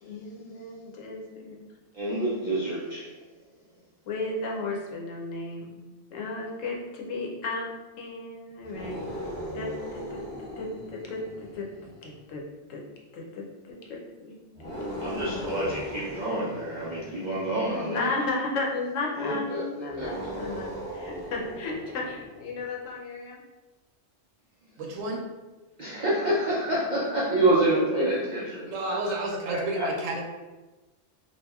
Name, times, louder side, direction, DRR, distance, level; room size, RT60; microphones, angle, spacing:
voice 1, 0.0-1.6 4.0-5.8 6.1-7.7 8.0-9.1 9.5-11.7 12.0-12.4 12.7-12.8 13.1-14.4 14.6-14.9 15.3-15.4 17.7-23.4 26.2-26.8 27.5-28.6, left 3 dB, 85° left, -2 dB, 1.0 m, -34 dB
voice 2, 1.9-3.1 14.8-18.1 19.2-19.6 20.0-20.1 25.8-28.6 29.0-29.1 29.5-29.9, right 1 dB, 60° right, -7 dB, 0.4 m, -27 dB
sound 1, 8.6-12.2 14.5-17.7 19.9-22.6, equal, 30° left, 1.1 m, -38 dB
voice 3, 24.8-25.2 28.7-30.2, right 2 dB, 90° right, 0 dB, 1.0 m, -31 dB
2.8 x 2.5 x 2.3 m, 1.2 s
omnidirectional pair, 1.3 m